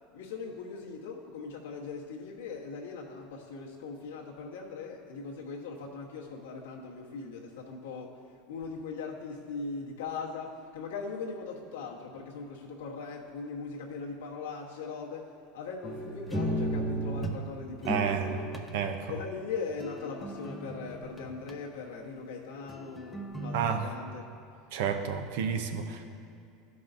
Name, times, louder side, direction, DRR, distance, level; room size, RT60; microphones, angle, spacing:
voice 1, 0.1-8.2 8.5-18.5 19.1-24.3, left 4 dB, 85° left, -2 dB, 1.2 m, -40 dB
sound 1, 15.8-17.4 17.8-18.7 19.8-21.5 22.7-23.8, right 1 dB, ahead, 0.7 m, -34 dB
voice 2, 17.8-18.3 18.7-19.1 23.5-23.9 24.7-26.0, right 7 dB, 75° right, 6 dB, 0.7 m, -30 dB
13.0 x 5.5 x 2.6 m, 2.6 s
hypercardioid pair, 100°, 0 cm